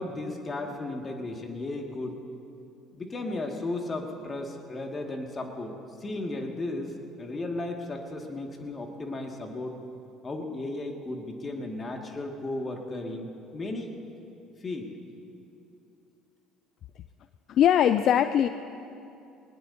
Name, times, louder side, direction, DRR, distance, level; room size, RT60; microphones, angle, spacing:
voice 1, 0.0-2.2 2.9-5.7 6.0-9.8 10.2-13.9 14.6-14.9, left 2 dB, 30° left, 2 dB, 2.3 m, -35 dB
voice 2, 17.5-18.5, left 10 dB, 55° left, 11 dB, 0.4 m, -21 dB
21.0 x 20.0 x 2.9 m, 2.8 s
hypercardioid pair, 65°, 0 cm